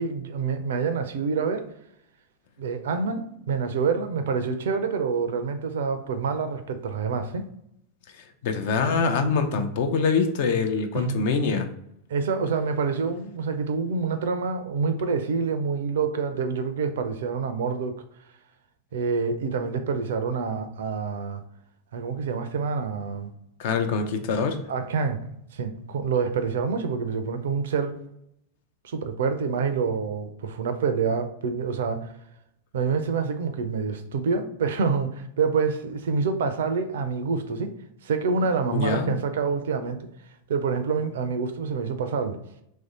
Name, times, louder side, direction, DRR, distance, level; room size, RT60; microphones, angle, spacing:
voice 1, 0.0-1.7 2.6-7.4 10.9-11.2 12.1-18.0 18.9-21.4 21.9-23.3 24.7-25.2 25.5-28.0 28.8-32.1 32.7-37.7 38.0-40.1 40.5-42.4, right 5 dB, 60° right, 0.4 m, -27 dB
voice 2, 8.4-11.7 23.6-24.6 38.7-39.2, left 5 dB, 50° left, 0.5 m, -24 dB
3.1 x 2.7 x 3.6 m
figure-of-eight pair, 90°, 0 cm